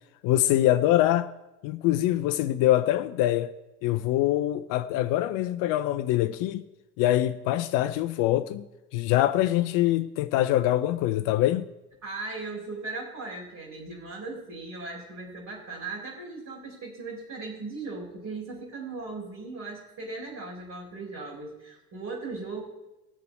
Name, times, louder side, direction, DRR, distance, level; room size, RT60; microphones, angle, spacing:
voice 1, 0.2-1.3 1.6-3.5 3.8-6.6 7.0-8.6 8.9-11.7, left 14 dB, 45° left, 0.6 m, -24 dB
voice 2, 12.0-22.6, right 3 dB, 35° right, 4.4 m, -38 dB
19.5 x 6.8 x 4.8 m
figure-of-eight pair, 70°, 47 cm